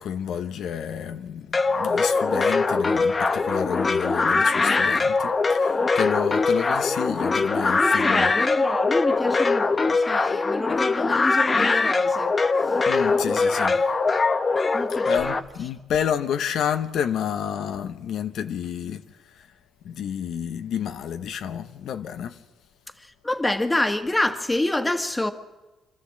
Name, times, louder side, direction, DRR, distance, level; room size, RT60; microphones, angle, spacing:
voice 1, 0.0-8.3 12.9-13.8 15.0-19.5 19.8-22.4, left 8 dB, 75° left, 0.8 m, -30 dB
sound 1, 1.5-15.4, left 4 dB, 30° left, 0.9 m, -22 dB
voice 2, 7.8-12.4 13.1-13.8 14.7-15.4 23.0-25.3, left 1 dB, 15° left, 1.5 m, -27 dB
26.5 x 13.0 x 7.6 m
cardioid pair, 90°, 0 cm